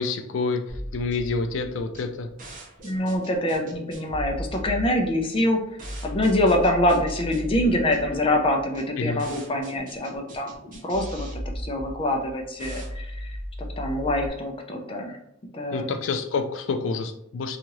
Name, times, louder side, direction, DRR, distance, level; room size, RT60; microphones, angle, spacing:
voice 1, 0.0-2.3 9.0-9.2 15.7-17.6, left 4 dB, 85° left, 7 dB, 0.4 m, -28 dB
sound 1, 0.7-14.3, equal, 45° right, 0.7 m, -37 dB
voice 2, 2.8-5.6 6.0-10.5 10.8-11.3 11.6-13.3 13.8-15.2 15.5-15.9, left 1 dB, 30° left, 2 dB, 0.5 m, -25 dB
2.8 x 2.4 x 3.0 m, 0.76 s
head